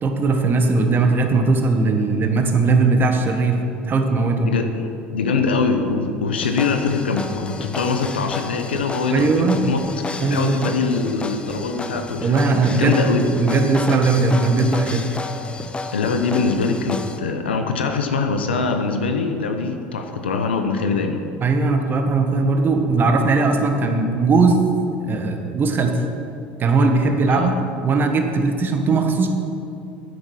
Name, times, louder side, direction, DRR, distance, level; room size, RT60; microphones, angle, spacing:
voice 1, 0.0-4.5 9.1-9.6 10.2-10.7 12.2-15.2 21.4-24.7 25.1-26.0 26.6-29.3, right 3 dB, 35° right, 4 dB, 1.5 m, -19 dB
voice 2, 4.4-13.2 15.9-21.2 27.3-27.5, left 4 dB, 90° left, 6 dB, 0.9 m, -23 dB
sound 1, 6.4-17.2, left 3 dB, 20° left, 0.8 m, -32 dB
9.8 x 8.3 x 6.3 m, 2.6 s
hypercardioid pair, 75°, 6 cm